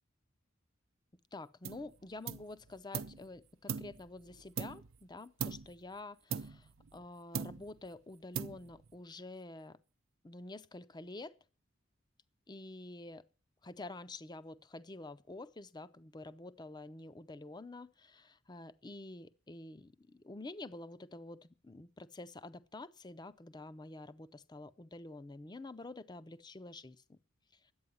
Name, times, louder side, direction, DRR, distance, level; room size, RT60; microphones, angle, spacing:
voice 1, 1.3-9.8 10.2-11.4 12.5-13.3 13.6-27.2 27.5-27.7, left 2 dB, 20° left, 0.5 m, -48 dB
sound 1, 1.6-1.9 2.3-3.2 3.7-5.0 5.4-5.8 6.3-7.1 7.3-7.9 8.3-8.9, right 6 dB, 75° right, 0.6 m, -40 dB
11.0 x 8.6 x 9.4 m
head